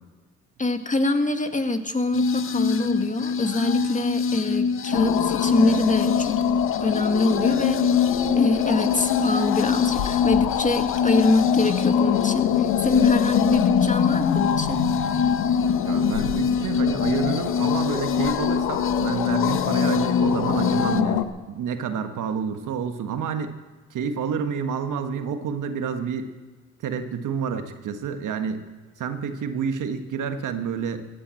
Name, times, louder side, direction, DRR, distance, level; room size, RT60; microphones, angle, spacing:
voice 1, 0.6-6.4 6.8-8.1 8.4-14.8, left 2 dB, 25° left, 6 dB, 2.1 m, -24 dB
sound 1, 2.1-21.0, left 5 dB, 40° left, 0.8 m, -25 dB
sound 2, 4.9-21.2, left 11 dB, 85° left, 1.1 m, -25 dB
sound 3, 6.0-20.2, right 5 dB, 90° right, 3.0 m, -48 dB
voice 2, 15.8-23.5 23.9-26.3 26.8-28.6 29.0-31.1, right 6 dB, 70° right, 8 dB, 1.6 m, -29 dB
15.5 x 11.0 x 7.7 m, 1.4 s
supercardioid pair, 55°, 32 cm